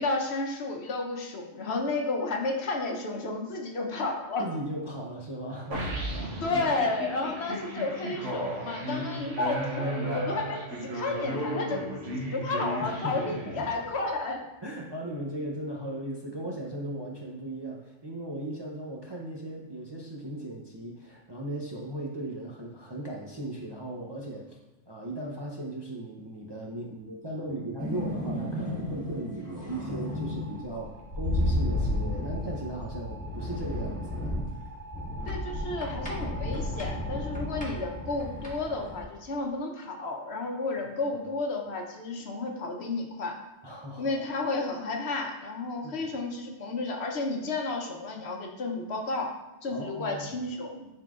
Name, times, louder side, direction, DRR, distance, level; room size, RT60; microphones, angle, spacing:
voice 1, 0.0-4.5 6.4-11.8 12.1-14.4 35.3-43.3 44.0-49.3 49.6-50.9, left 3 dB, 65° left, 2 dB, 1.1 m, -32 dB
voice 2, 4.4-6.6 8.1-8.2 9.4-9.5 12.8-13.7 14.6-24.6 24.9-34.4 37.3-37.5 43.6-44.2 45.8-46.1 49.7-50.3, right 1 dB, 30° right, -2 dB, 0.5 m, -37 dB
sound 1, 5.7-14.0, right 1 dB, 80° right, 1.4 m, -34 dB
sound 2, 27.8-39.0, left 1 dB, 5° left, 1.4 m, -33 dB
10.5 x 3.7 x 2.4 m, 1.1 s
omnidirectional pair, 1.2 m